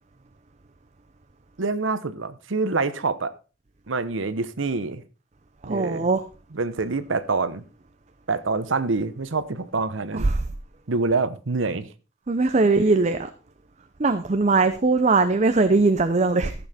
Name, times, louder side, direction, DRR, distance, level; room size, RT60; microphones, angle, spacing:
voice 1, 1.6-3.3 3.9-5.0 5.6-6.1 6.5-7.6 8.3-10.3 10.9-11.9 12.6-12.8, right 3 dB, 75° right, 0.9 m, -26 dB
voice 2, 5.6-6.2 10.1-10.2 12.3-13.3 14.0-16.5, right 3 dB, 35° right, 0.6 m, -20 dB
14.0 x 7.1 x 4.2 m
head